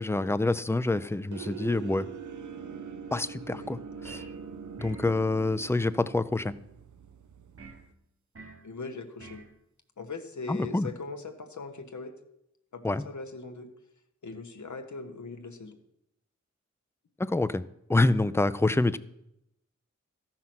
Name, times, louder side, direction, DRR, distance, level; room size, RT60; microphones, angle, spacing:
voice 1, 0.0-2.1 3.1-3.8 4.0-4.2 4.8-6.5 10.5-10.9 12.8-13.0 17.2-19.0, left 2 dB, 10° left, 15 dB, 0.4 m, -27 dB
sound 1, 1.3-7.9, right 7 dB, 85° right, 0.6 m, -43 dB
sound 2, 4.0-4.4 4.8-5.2 7.6-7.9 8.3-8.7 9.2-9.5, right 4 dB, 50° right, 1.2 m, -47 dB
voice 2, 8.6-9.4 10.0-12.2 12.7-13.7 14.2-15.8, left 4 dB, 80° left, 6 dB, 1.1 m, -40 dB
13.5 x 5.7 x 6.0 m, 0.82 s
wide cardioid pair, 65°, 29 cm